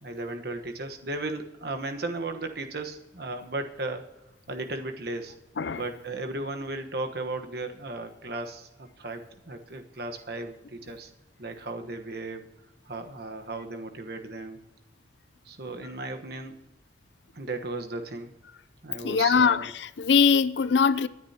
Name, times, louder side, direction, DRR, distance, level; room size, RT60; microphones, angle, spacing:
voice 1, 0.0-4.0 4.5-5.3 5.7-11.1 11.4-12.4 12.9-14.6 15.4-16.6 17.3-18.3 18.8-19.7, right 2 dB, 60° right, 1.2 m, -35 dB
voice 2, 19.0-21.1, left 6 dB, 75° left, 0.5 m, -22 dB
24.0 x 9.9 x 2.9 m
head